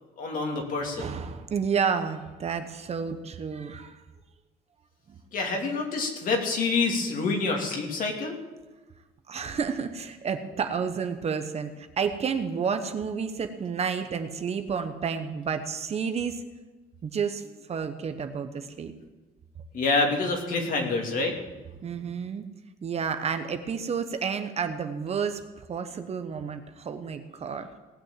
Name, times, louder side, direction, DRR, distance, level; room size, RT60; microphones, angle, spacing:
voice 1, 0.2-1.1 5.3-8.4 19.7-21.3, left 3 dB, 55° left, 1 dB, 2.9 m, -27 dB
voice 2, 0.8-4.0 5.1-5.2 9.3-16.4 17.0-18.9 21.8-22.4 22.8-27.7, right 6 dB, 40° right, 8 dB, 1.1 m, -31 dB
18.5 x 6.3 x 7.5 m, 1.2 s
cardioid pair, 110°, 17 cm